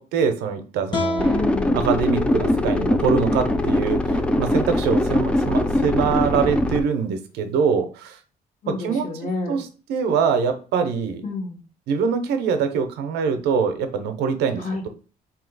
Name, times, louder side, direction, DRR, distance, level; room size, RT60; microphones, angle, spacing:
voice 1, 0.0-1.3 1.7-8.2 8.7-9.1 9.5-11.3 11.9-14.9, right 6 dB, 80° right, 8 dB, 0.6 m, -24 dB
sound 1, 0.9-4.1, left 2 dB, 25° left, 1.1 m, -32 dB
voice 2, 1.2-1.9 8.6-9.6 11.2-11.6 14.6-14.8, left 2 dB, 50° left, 1 dB, 1.2 m, -29 dB
sound 2, 1.2-6.8, left 1 dB, 5° left, 0.3 m, -22 dB
Guitar, 1.8-5.8, left 7 dB, 85° left, 0.4 m, -38 dB
2.8 x 2.7 x 3.9 m, 0.37 s
cardioid pair, 110°, 17 cm